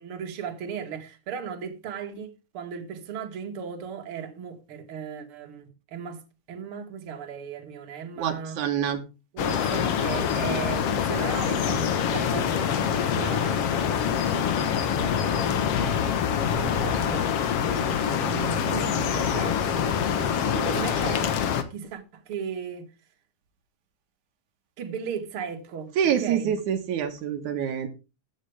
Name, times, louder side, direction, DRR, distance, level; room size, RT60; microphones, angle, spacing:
voice 1, 0.0-8.6 9.3-13.8 14.9-15.6 16.5-21.4 21.7-22.9 24.8-26.6, right 7 dB, 50° right, 2.4 m, -36 dB
voice 2, 8.2-9.0 26.0-27.9, right 8 dB, 80° right, 2.6 m, -26 dB
sound 1, 9.4-21.6, left 8 dB, 60° left, 2.0 m, -25 dB
14.0 x 9.1 x 3.4 m
omnidirectional pair, 3.5 m